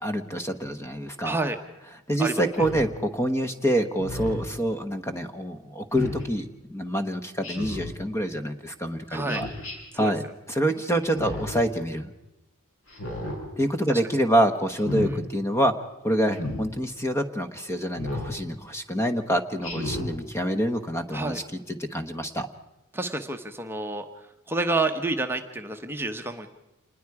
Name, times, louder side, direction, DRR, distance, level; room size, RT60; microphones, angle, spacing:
voice 1, 0.0-1.4 2.1-9.5 9.9-12.1 13.6-15.7 16.0-22.5, equal, 10° left, 8 dB, 1.1 m, -26 dB
voice 2, 1.2-1.6 2.2-2.3 9.1-9.4 9.9-10.1 13.9-14.0 14.3-14.4 15.0-15.2 21.1-21.4 22.9-24.0 24.5-26.5, right 2 dB, 10° right, 5 dB, 1.0 m, -29 dB
Speech synthesizer, 2.5-2.9 4.0-4.5 5.9-6.2 7.4-7.9 9.3-9.7 11.0-11.6 12.9-13.4 14.7-15.1 16.3-16.6 18.0-18.3 19.6-20.1, left 1 dB, 65° left, 7.0 m, -32 dB
27.5 x 20.5 x 4.8 m, 0.97 s
head